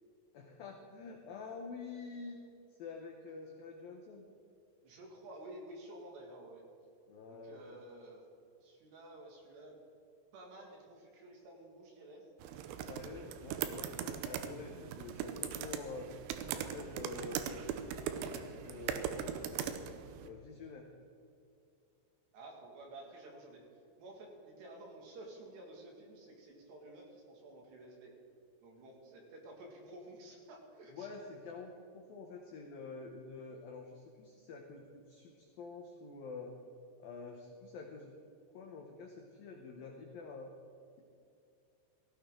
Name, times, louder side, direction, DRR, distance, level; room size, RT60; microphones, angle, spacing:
voice 1, 0.3-2.4 2.7-4.3 7.1-7.6 12.7-17.8 18.2-19.8 20.2-20.9 30.9-36.5 37.0-38.1 38.5-40.5, left 4 dB, 80° left, 2 dB, 2.1 m, -48 dB
voice 2, 4.8-6.6 7.3-8.3 8.6-9.8 10.3-12.3 22.3-23.7 24.0-28.1 28.6-31.1, right 1 dB, 65° right, 0 dB, 4.0 m, -52 dB
sound 1, 12.4-20.3, right 9 dB, 85° right, 3.3 m, -40 dB
17.0 x 15.5 x 3.8 m, 2.5 s
omnidirectional pair, 5.6 m